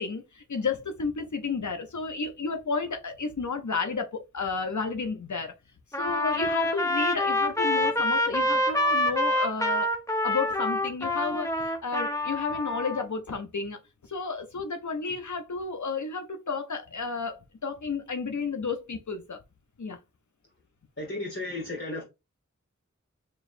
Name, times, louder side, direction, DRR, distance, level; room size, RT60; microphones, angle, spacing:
voice 1, 0.0-5.5 6.0-9.9 10.2-13.8 14.0-19.4 19.8-20.0, left 4 dB, 70° left, 0.7 m, -32 dB
Trumpet, 5.9-13.0, left 1 dB, 10° left, 0.7 m, -26 dB
voice 2, 21.0-22.0, left 2 dB, 45° left, 1.3 m, -34 dB
4.5 x 3.1 x 2.5 m
wide cardioid pair, 40°, 30 cm